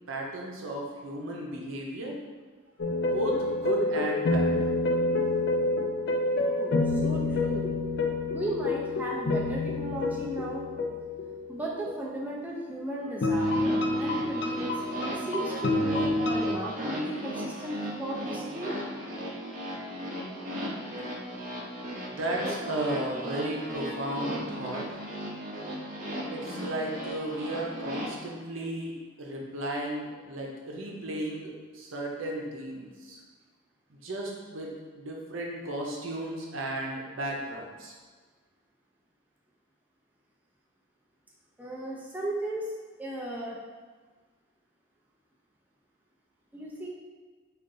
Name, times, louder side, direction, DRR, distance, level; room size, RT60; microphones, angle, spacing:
voice 1, 0.1-2.2 3.0-4.6 21.8-25.0 26.3-33.2 33.9-37.9, right 1 dB, 80° right, -1 dB, 0.7 m, -34 dB
sound 1, 2.8-12.1 13.2-16.5, left 2 dB, 55° left, 0.4 m, -28 dB
voice 2, 4.9-5.2 6.4-7.7 8.3-10.6 11.5-14.8 15.1-18.7 41.6-42.7 43.0-43.6 46.5-46.9, right 1 dB, 10° right, -4 dB, 0.4 m, -35 dB
sound 2, 13.3-28.1, equal, 40° right, 0.6 m, -36 dB
3.7 x 2.5 x 3.8 m, 1.5 s
head